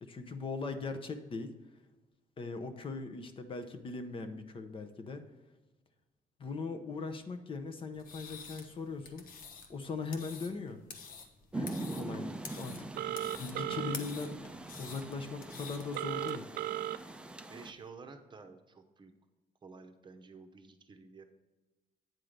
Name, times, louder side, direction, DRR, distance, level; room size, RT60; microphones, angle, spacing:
voice 1, 0.0-1.5 2.4-5.2 6.4-9.2 9.7-10.8 11.5-14.4 14.8-16.5, left 4 dB, 35° left, 8 dB, 0.7 m, -40 dB
sound 1, 7.9-16.3, left 5 dB, 70° left, 1.1 m, -49 dB
Rain, 11.5-17.7, right 2 dB, 5° right, 0.4 m, -43 dB
Telephone, 13.0-14.0 15.9-17.0, right 13 dB, 80° right, 0.4 m, -35 dB
voice 2, 17.5-19.1 19.6-21.2, right 4 dB, 30° right, 6 dB, 0.8 m, -51 dB
9.0 x 3.7 x 6.5 m, 1.2 s
cardioid pair, 120°, 15 cm